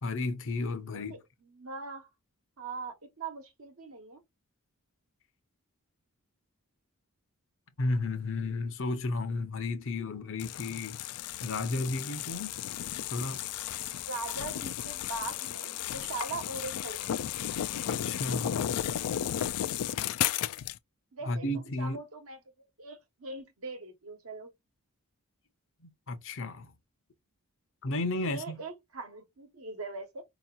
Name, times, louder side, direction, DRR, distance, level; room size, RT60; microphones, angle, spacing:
voice 1, 0.0-1.2 7.8-11.1 11.4-12.6 13.1-13.5 17.9-18.7 21.2-22.0 25.8-26.7 27.8-28.6, left 2 dB, 60° left, 0.7 m, -33 dB
voice 2, 0.9-2.1 2.6-4.2 13.9-17.1 21.1-24.5 28.2-30.2, right 3 dB, 65° right, 1.1 m, -41 dB
sound 1, 10.4-20.8, left 11 dB, 80° left, 0.4 m, -34 dB
4.6 x 2.9 x 2.4 m
head